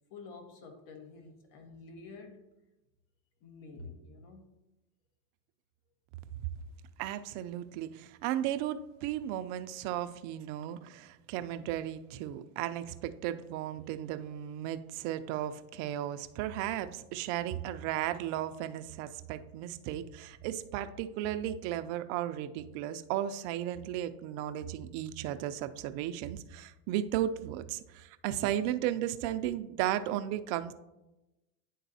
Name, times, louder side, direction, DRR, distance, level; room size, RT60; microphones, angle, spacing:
voice 1, 0.1-2.4 3.4-4.4, left 3 dB, 60° left, 4 dB, 1.3 m, -49 dB
voice 2, 7.0-30.7, right 12 dB, 55° right, 10 dB, 0.5 m, -35 dB
10.0 x 3.9 x 2.7 m, 0.99 s
supercardioid pair, 120°, 38 cm